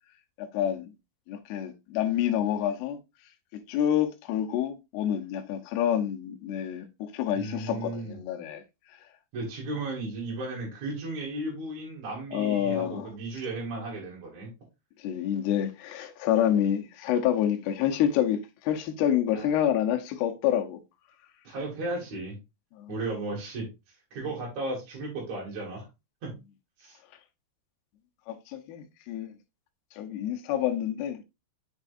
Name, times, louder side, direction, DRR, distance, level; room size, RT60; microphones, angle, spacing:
voice 1, 0.4-0.9 1.3-3.0 3.5-8.6 12.3-13.1 15.0-20.8 22.8-22.9 28.3-29.3 30.0-31.2, left 10 dB, 75° left, 2.4 m, -28 dB
voice 2, 7.3-8.2 9.3-14.5 19.3-19.5 21.4-22.4 22.9-25.9 26.2-26.3 26.8-27.0, right 2 dB, 45° right, 2.8 m, -35 dB
6.8 x 6.3 x 2.5 m
omnidirectional pair, 5.6 m